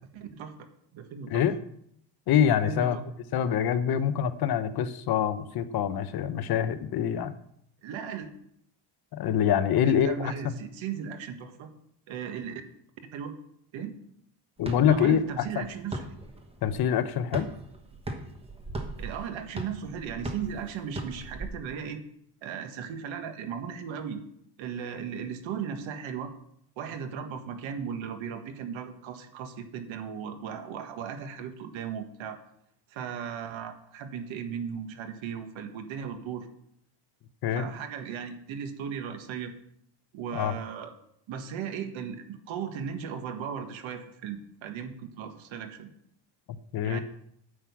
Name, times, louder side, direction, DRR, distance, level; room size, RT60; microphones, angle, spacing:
voice 1, 0.1-0.7 0.9-1.4 2.6-2.9 7.8-8.3 9.8-11.7 12.1-12.6 13.1-13.3 13.7-14.0 14.8-16.0 19.0-22.0 22.4-24.2 24.6-26.3 26.8-32.4 32.9-36.5 37.5-39.5 40.1-40.9 41.3-45.9 46.8-47.0, right 7 dB, 80° right, 7 dB, 1.7 m, -36 dB
voice 2, 2.3-3.0 3.3-7.4 9.1-10.3 14.6-15.6 16.6-17.5 37.4-37.7 40.3-40.5 46.7-47.0, left 9 dB, 55° left, 12 dB, 0.8 m, -25 dB
sound 1, 14.6-21.5, right 2 dB, 10° right, 1.2 m, -39 dB
9.5 x 6.2 x 8.3 m, 0.71 s
cardioid pair, 180°, 46 cm